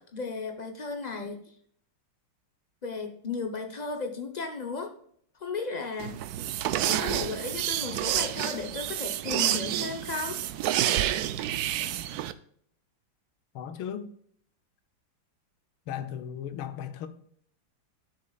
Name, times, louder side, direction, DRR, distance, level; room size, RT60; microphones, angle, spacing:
voice 1, 0.0-1.4 2.8-4.9 5.4-6.2 6.8-10.4, left 4 dB, 60° left, 0.4 m, -35 dB
sound 1, 6.0-12.3, right 12 dB, 85° right, 0.8 m, -29 dB
voice 2, 13.5-14.1 15.9-17.1, left 9 dB, 85° left, 1.6 m, -36 dB
12.0 x 6.5 x 2.3 m
omnidirectional pair, 2.2 m